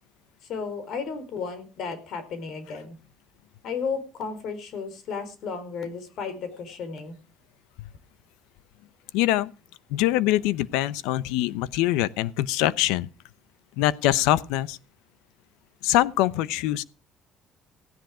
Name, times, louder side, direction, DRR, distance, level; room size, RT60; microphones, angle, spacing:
voice 1, 0.5-3.0 3.6-7.2, left 5 dB, 65° left, 4.2 m, -33 dB
voice 2, 9.1-9.5 9.9-13.1 13.8-14.8 15.8-16.8, left 15 dB, 85° left, 0.8 m, -23 dB
16.0 x 10.5 x 5.0 m
supercardioid pair, 75°, 0 cm